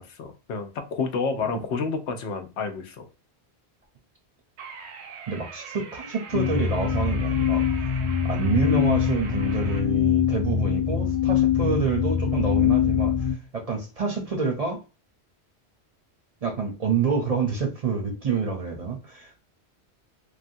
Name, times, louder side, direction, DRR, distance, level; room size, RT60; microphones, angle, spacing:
voice 1, 0.0-3.1, left 4 dB, 85° left, 0.9 m, -30 dB
sound 1, 4.6-9.8, right 6 dB, 85° right, 0.9 m, -41 dB
voice 2, 5.3-7.7 8.2-14.8 16.4-19.4, right 5 dB, 45° right, 0.6 m, -27 dB
sound 2, 6.3-13.3, left 8 dB, 35° left, 0.5 m, -23 dB
3.3 x 2.3 x 2.5 m
omnidirectional pair, 1.1 m